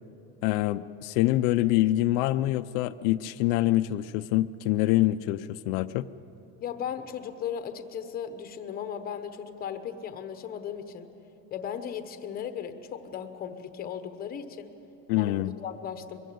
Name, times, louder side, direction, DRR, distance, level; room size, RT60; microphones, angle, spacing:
voice 1, 0.4-6.1 15.1-15.5, left 16 dB, 85° left, 10 dB, 0.7 m, -25 dB
voice 2, 6.6-11.1 11.5-14.7 15.2-16.2, left 8 dB, 25° left, 8 dB, 1.0 m, -36 dB
23.0 x 15.5 x 9.4 m, 2.9 s
cardioid pair, 170°, 39 cm